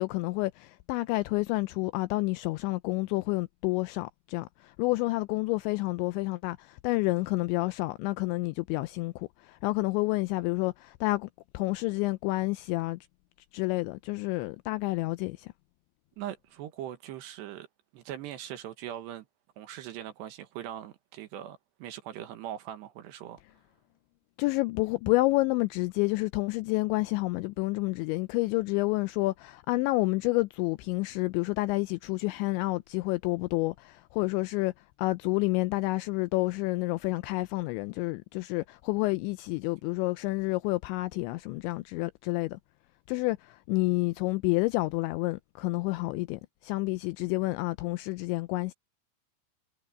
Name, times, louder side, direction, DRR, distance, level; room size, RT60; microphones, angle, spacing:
voice 1, 0.0-11.3 11.5-13.0 13.5-15.5 24.4-34.7 35.0-42.6 43.1-48.7, left 22 dB, 85° left, 2.6 m, -29 dB
voice 2, 16.2-17.7 17.9-19.3 19.6-23.4, right 11 dB, 70° right, 3.1 m, -41 dB
omnidirectional pair, 5.6 m